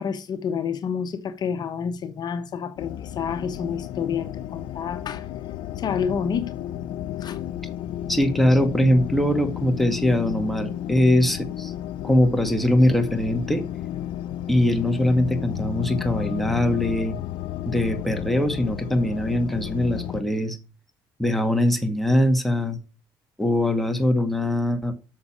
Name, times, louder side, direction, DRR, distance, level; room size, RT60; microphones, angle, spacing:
voice 1, 0.0-5.2 5.8-6.5 7.2-7.4, left 7 dB, 55° left, 1.1 m, -29 dB
sound 1, 2.8-20.2, left 11 dB, 75° left, 0.8 m, -32 dB
voice 2, 8.1-11.7 12.0-13.6 14.5-17.2 17.7-20.6 21.2-22.8 23.4-24.9, left 1 dB, ahead, 1.9 m, -22 dB
8.1 x 6.6 x 7.5 m
cardioid pair, 85°, 9 cm